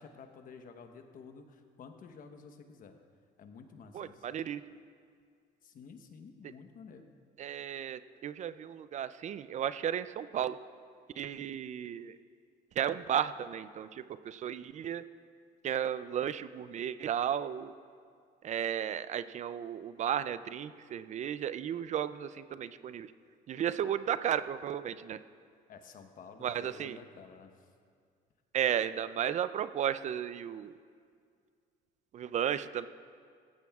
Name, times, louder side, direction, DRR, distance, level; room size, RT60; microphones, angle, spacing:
voice 1, 0.0-2.9 3.4-4.3 5.6-7.2 25.7-27.5, left 5 dB, 55° left, 6 dB, 1.0 m, -51 dB
voice 2, 3.9-4.6 7.4-10.6 11.2-12.1 12.8-15.0 15.6-17.7 18.4-23.1 23.5-25.2 26.4-27.0 28.5-30.7 32.1-32.9, right 9 dB, 45° right, 14 dB, 0.4 m, -34 dB
15.5 x 15.5 x 2.4 m, 2.1 s
cardioid pair, 110°, 17 cm